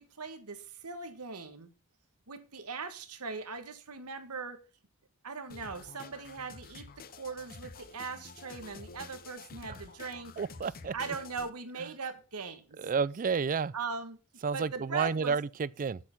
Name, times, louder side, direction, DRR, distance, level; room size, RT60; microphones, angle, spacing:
voice 1, 0.0-1.7 2.3-4.6 5.2-10.4 10.9-12.8 13.7-14.2 14.5-15.4, right 4 dB, 90° right, 1.5 m, -40 dB
sound 1, 5.5-11.5, left 4 dB, 40° left, 0.7 m, -49 dB
voice 2, 10.4-10.9 12.8-13.7 14.4-16.0, right 5 dB, 40° right, 0.4 m, -30 dB
8.2 x 7.8 x 6.0 m
head